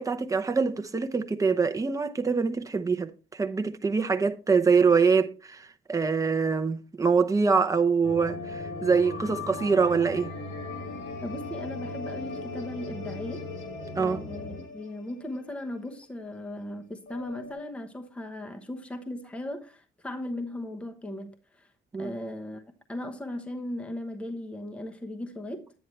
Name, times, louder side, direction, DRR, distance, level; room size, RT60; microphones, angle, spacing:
voice 1, 0.0-10.3 14.0-14.2 21.9-22.1, right 5 dB, 15° right, 0.7 m, -24 dB
sound 1, 8.0-15.5 15.8-15.9 17.1-17.5, left 3 dB, 65° left, 4.7 m, -38 dB
voice 2, 11.2-13.5 14.0-21.7 22.0-22.6 22.9-25.7, left 1 dB, 5° left, 1.0 m, -37 dB
10.0 x 9.2 x 3.2 m
cardioid pair, 140°, 20 cm